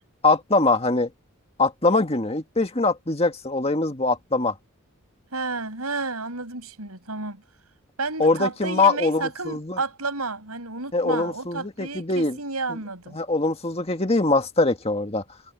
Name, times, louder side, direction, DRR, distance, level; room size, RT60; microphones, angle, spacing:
voice 1, 0.2-1.1 1.6-4.5 8.2-9.8 10.9-12.4 13.1-15.2, left 3 dB, 25° left, 1.9 m, -22 dB
voice 2, 5.3-7.4 8.0-13.2, right 3 dB, 85° right, 7.1 m, -31 dB
head